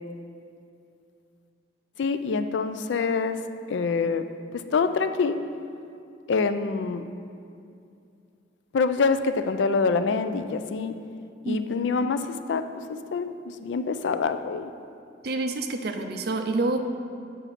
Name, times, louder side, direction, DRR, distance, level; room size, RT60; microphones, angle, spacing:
voice 1, 2.0-3.4 3.7-4.2 4.5-5.4 6.3-7.0 8.7-11.0 11.4-14.7, left 4 dB, 70° left, 10 dB, 0.4 m, -26 dB
voice 2, 15.2-16.8, right 2 dB, 55° right, 6 dB, 0.5 m, -27 dB
7.3 x 6.7 x 4.2 m, 2.5 s
head